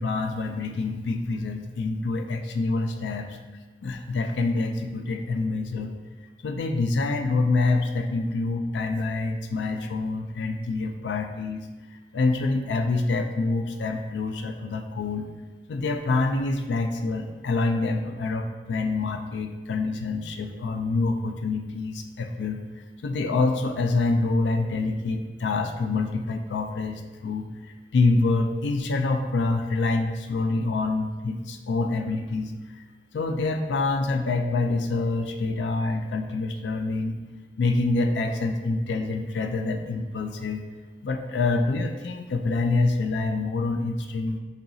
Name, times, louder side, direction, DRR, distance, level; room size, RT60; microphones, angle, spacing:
voice 1, 0.0-3.4 3.8-5.9 6.4-11.7 12.1-15.3 15.7-22.6 23.0-32.5 33.1-37.2 37.6-40.6 41.0-44.4, left 3 dB, 85° left, 5 dB, 0.4 m, -26 dB
6.6 x 2.9 x 2.7 m, 1.2 s
head